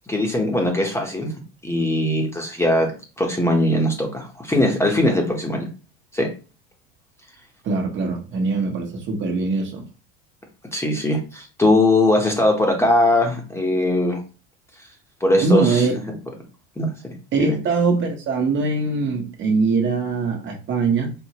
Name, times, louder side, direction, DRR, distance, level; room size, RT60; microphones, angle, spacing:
voice 1, 0.1-1.3 1.6-5.7 6.1-6.3 10.7-14.2 15.2-15.9 16.8-16.9 17.4-17.6, left 1 dB, 10° left, 1 dB, 0.9 m, -20 dB
voice 2, 7.6-9.8 15.4-15.9 17.3-21.1, right 4 dB, 40° right, 2 dB, 1.2 m, -22 dB
4.4 x 2.7 x 2.9 m, 0.33 s
supercardioid pair, 120°, 29 cm